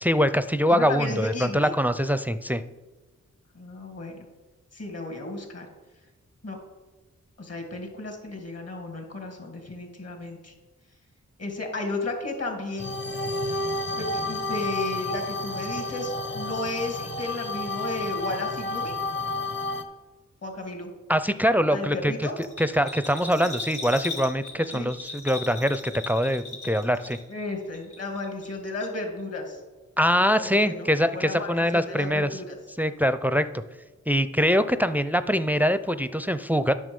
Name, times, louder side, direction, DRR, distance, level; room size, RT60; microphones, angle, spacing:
voice 1, 0.0-2.6 21.1-22.3 22.6-27.2 30.0-32.4 32.8-33.6 34.1-36.7, equal, 5° right, 12 dB, 0.5 m, -23 dB
voice 2, 0.7-1.7 3.5-4.3 4.7-5.7 6.4-6.6 7.4-10.5 11.4-12.9 14.0-18.9 20.4-20.9 21.7-22.3 24.7-24.9 27.3-29.6 30.4-30.9 31.1-32.6, left 2 dB, 50° left, 2 dB, 2.5 m, -33 dB
sound 1, 12.8-19.8, left 2 dB, 35° left, 1.1 m, -31 dB
Bell, 22.4-27.5 27.7-28.5 28.8-28.9, left 3 dB, 75° left, 2.7 m, -38 dB
9.2 x 6.2 x 5.4 m, 1.2 s
cardioid pair, 45°, 31 cm